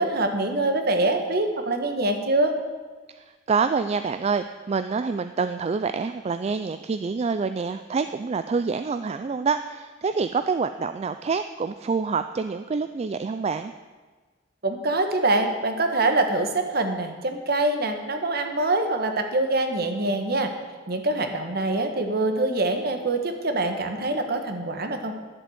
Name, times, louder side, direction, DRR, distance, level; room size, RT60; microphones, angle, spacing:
voice 1, 0.0-2.5 14.6-20.5 20.9-25.1, right 2 dB, 55° right, 6 dB, 1.3 m, -24 dB
voice 2, 3.1-13.7, right 5 dB, 35° right, 10 dB, 0.3 m, -27 dB
11.0 x 7.8 x 7.8 m, 1.4 s
head